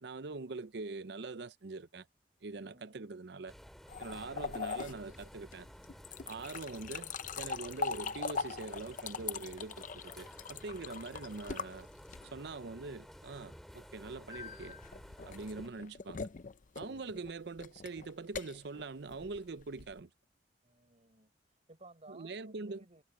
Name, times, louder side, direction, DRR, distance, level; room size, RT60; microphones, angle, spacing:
voice 1, 0.0-2.1 2.4-3.5 4.0-5.7 6.3-11.9 12.3-14.8 15.2-16.3 16.8-20.1 22.1-22.9, right 3 dB, 65° right, 0.7 m, -43 dB
voice 2, 2.5-3.1 20.6-21.3 21.7-23.0, right 2 dB, 40° right, 5.5 m, -59 dB
sound 1, 3.5-15.7, equal, ahead, 3.0 m, -53 dB
sound 2, 3.9-12.5 14.3-20.0, left 5 dB, 45° left, 0.6 m, -42 dB
head